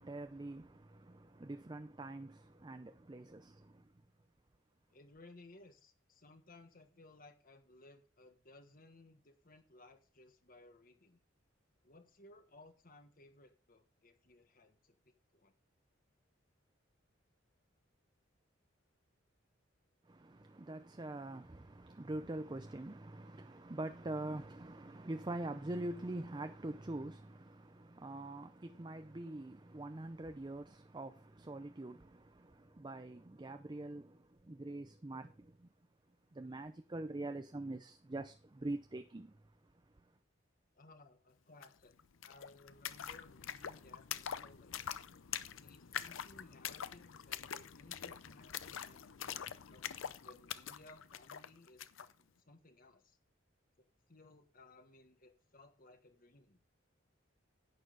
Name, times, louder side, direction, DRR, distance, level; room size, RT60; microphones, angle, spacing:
voice 1, 0.0-3.9 20.1-35.7 36.3-39.4, right 2 dB, 20° right, 0.5 m, -44 dB
voice 2, 4.9-11.2 11.8-15.5 40.7-41.9 42.2-44.9 45.6-53.2 53.8-56.6, left 2 dB, 45° left, 1.5 m, -61 dB
sound 1, 41.6-41.7 41.9-52.1, left 9 dB, 85° left, 0.6 m, -45 dB
11.0 x 8.9 x 3.9 m
head